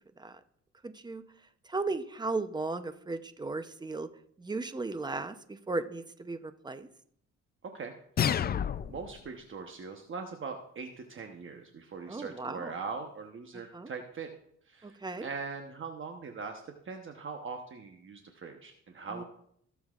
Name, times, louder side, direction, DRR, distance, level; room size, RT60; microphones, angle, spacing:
voice 1, 0.8-1.2 1.7-4.1 4.4-6.9 12.1-12.7 13.7-13.9 14.8-15.3 19.1-19.2, right 3 dB, 15° right, 11 dB, 0.6 m, -36 dB
voice 2, 7.6-7.9 8.9-14.3 14.7-19.2, right 5 dB, 40° right, 4 dB, 1.0 m, -41 dB
sound 1, 8.2-9.2, left 8 dB, 35° left, 0.4 m, -29 dB
16.5 x 7.1 x 2.4 m, 0.69 s
cardioid pair, 90°, 30 cm